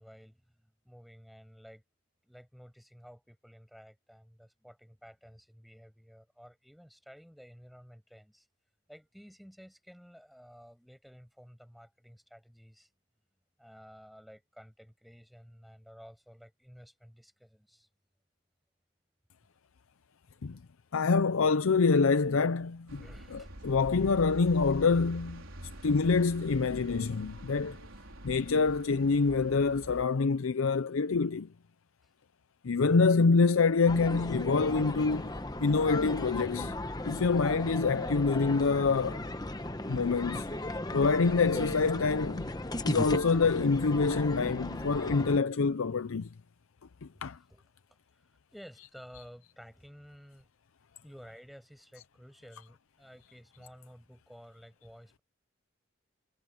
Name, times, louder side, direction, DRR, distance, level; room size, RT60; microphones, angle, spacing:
voice 1, 0.0-1.8 2.2-8.5 8.9-12.9 13.6-17.9 20.5-20.6 22.9-23.7 32.0-32.1 47.5-47.6 47.9-50.5 51.0-55.2, equal, ahead, 6.8 m, -53 dB
voice 2, 20.9-25.4 25.8-27.8 28.2-31.5 32.6-35.3 35.6-36.7 37.0-39.2 39.9-40.5 40.9-42.5 42.8-46.3 47.0-47.4, left 4 dB, 80° left, 0.6 m, -26 dB
sound 1, 22.9-30.1, right 1 dB, 75° right, 4.1 m, -45 dB
sound 2, 33.9-45.4, left 1 dB, 20° left, 0.9 m, -36 dB
head